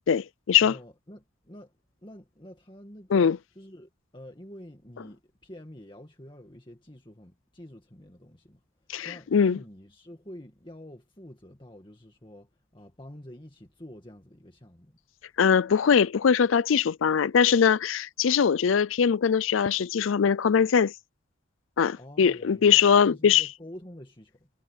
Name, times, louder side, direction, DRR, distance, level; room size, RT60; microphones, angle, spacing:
voice 1, 0.1-0.7 3.1-3.4 8.9-9.6 15.4-20.9 21.8-23.4, left 7 dB, 80° left, 0.4 m, -21 dB
voice 2, 0.6-1.8 2.0-15.0 21.9-24.5, left 1 dB, 25° left, 2.0 m, -47 dB
head